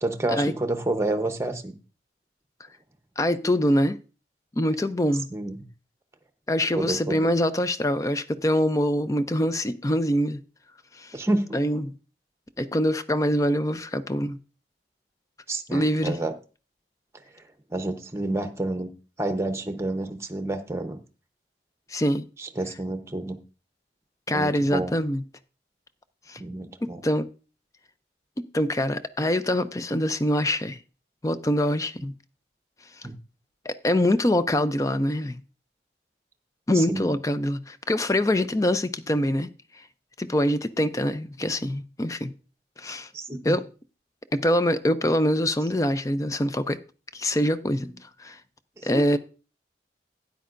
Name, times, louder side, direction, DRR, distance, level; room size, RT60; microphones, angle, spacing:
voice 1, 0.0-1.7 5.3-5.6 6.8-7.3 11.1-11.8 15.5-16.3 17.3-17.4 17.7-18.9 19.2-21.0 22.4-23.4 24.3-24.9 26.4-27.0 33.0-33.1 36.7-37.2 43.1-43.6 48.8-49.2, right 2 dB, 15° right, 0.9 m, -29 dB
voice 2, 3.2-4.0 4.6-5.3 6.5-10.4 11.0-11.2 11.5-11.8 12.6-14.4 15.7-16.2 21.9-22.2 24.3-25.2 26.3-26.4 26.8-27.3 28.4-30.8 31.2-32.1 33.7-35.4 36.7-39.5 40.2-42.3 42.8-43.1 43.4-43.6 44.3-46.8 47.1-48.4 48.8-49.2, left 1 dB, 20° left, 0.4 m, -24 dB
12.5 x 9.4 x 2.5 m
head